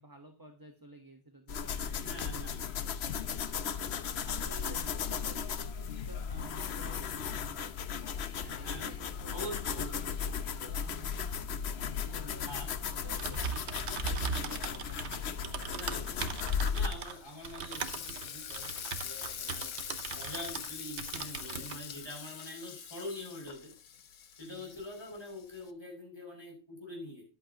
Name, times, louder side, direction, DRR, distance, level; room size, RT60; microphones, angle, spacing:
voice 1, 0.0-2.9 4.2-7.7 8.4-9.6 9.9-11.3 11.8-15.6 24.4-24.7, right 1 dB, 15° right, 4 dB, 1.1 m, -52 dB
sound 1, 1.5-16.9, left 7 dB, 55° left, 0.9 m, -36 dB
voice 2, 2.0-2.9 4.1-4.3 5.1-5.2 8.6-8.9 9.3-9.9 12.5-12.7 15.7-16.2 16.7-18.7 19.0-19.7 20.1-23.7 24.4-27.2, left 1 dB, 15° left, -1 dB, 6.6 m, -44 dB
Typing, 13.0-20.7 21.0-21.8, right 6 dB, 55° right, 1.2 m, -39 dB
Frying (food), 16.0-25.7, left 8 dB, 85° left, 1.4 m, -44 dB
13.5 x 11.0 x 2.9 m, 0.34 s
omnidirectional pair, 1.5 m